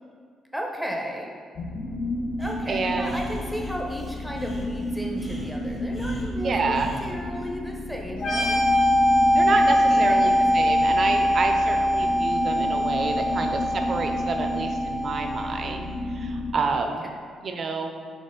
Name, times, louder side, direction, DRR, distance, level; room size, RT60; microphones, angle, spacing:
voice 1, 0.5-1.3 2.4-8.6 9.6-10.4, equal, ahead, 0 dB, 0.6 m, -34 dB
sound 1, 1.5-16.5, left 1 dB, 55° left, 0.5 m, -32 dB
Breathing, 2.4-7.1, right 1 dB, 20° left, 1.0 m, -40 dB
voice 2, 2.7-3.2 6.3-7.0 9.3-17.0 17.4-17.9, right 4 dB, 50° right, 5 dB, 0.4 m, -29 dB
sound 2, 8.2-15.7, equal, 85° left, 1.2 m, -22 dB
4.3 x 2.9 x 3.6 m, 2.1 s
cardioid pair, 90°, 0 cm